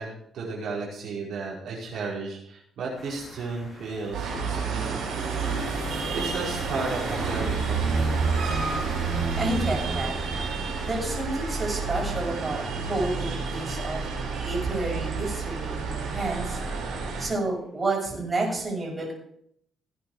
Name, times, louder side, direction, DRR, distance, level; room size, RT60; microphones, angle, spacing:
voice 1, 0.0-5.2 6.1-8.0, right 4 dB, 70° right, -4 dB, 4.8 m, -34 dB
sound 1, 3.0-15.7, left 2 dB, 25° left, 4.7 m, -43 dB
sound 2, 4.1-17.3, right 4 dB, 85° right, 5.4 m, -29 dB
voice 2, 9.4-10.2 10.8-14.0 14.4-16.6 17.2-19.1, right 2 dB, 25° right, -1 dB, 6.4 m, -30 dB
17.5 x 9.3 x 4.9 m, 0.68 s
cardioid pair, 90°, 0 cm